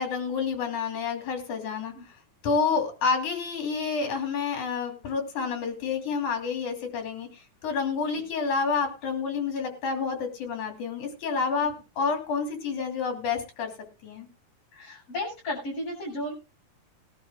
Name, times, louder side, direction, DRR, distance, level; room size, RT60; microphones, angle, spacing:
voice 1, 0.0-2.1 2.4-13.7 14.0-14.3, left 5 dB, 65° left, 3 dB, 4.3 m, -29 dB
voice 2, 14.7-16.3, left 1 dB, 50° left, -5 dB, 8.3 m, -34 dB
21.0 x 12.0 x 2.3 m, 0.29 s
omnidirectional pair, 3.7 m